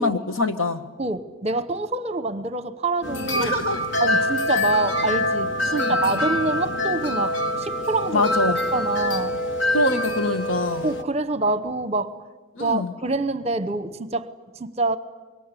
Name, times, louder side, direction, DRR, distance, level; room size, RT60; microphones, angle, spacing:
voice 1, 0.0-0.8 3.3-3.8 5.7-6.0 8.1-8.6 9.7-10.9 12.5-12.9, left 2 dB, 80° left, 1.5 m, -24 dB
voice 2, 1.0-3.5 4.0-8.3 8.7-9.4 10.8-12.2 12.6-15.0, right 2 dB, 30° right, 0.9 m, -26 dB
sound 1, 3.0-11.0, left 1 dB, 60° left, 1.3 m, -25 dB
25.5 x 22.5 x 9.8 m
head